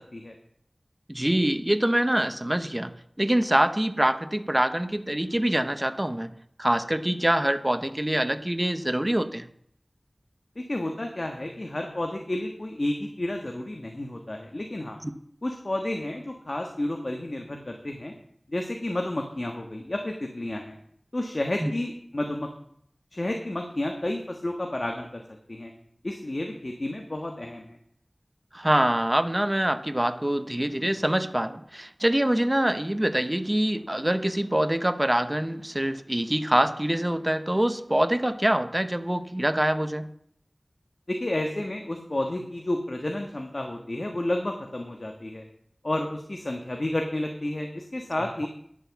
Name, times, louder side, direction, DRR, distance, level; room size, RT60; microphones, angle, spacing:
voice 1, 1.1-9.5 15.0-15.1 21.6-21.7 28.5-40.1, right 1 dB, 20° right, 11 dB, 0.8 m, -25 dB
voice 2, 10.6-15.0 15.4-18.1 18.5-20.7 21.1-22.5 23.1-25.2 25.5-25.7 26.0-27.8 41.1-45.4 45.8-48.5, left 1 dB, 55° left, 3 dB, 1.4 m, -31 dB
10.5 x 7.5 x 7.1 m, 0.67 s
wide cardioid pair, 50°, 0 cm